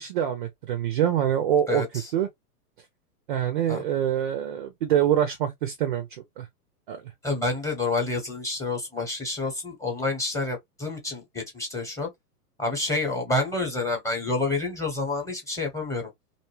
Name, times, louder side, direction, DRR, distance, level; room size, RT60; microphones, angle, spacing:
voice 1, 0.0-1.8 2.1-2.3 3.3-6.5 6.9-7.1, right 10 dB, 35° right, 0.4 m, -25 dB
voice 2, 1.7-2.1 3.7-3.8 7.2-12.1 12.6-16.1, left 2 dB, 5° left, 0.9 m, -28 dB
2.5 x 2.1 x 3.1 m
hypercardioid pair, 115°, 47 cm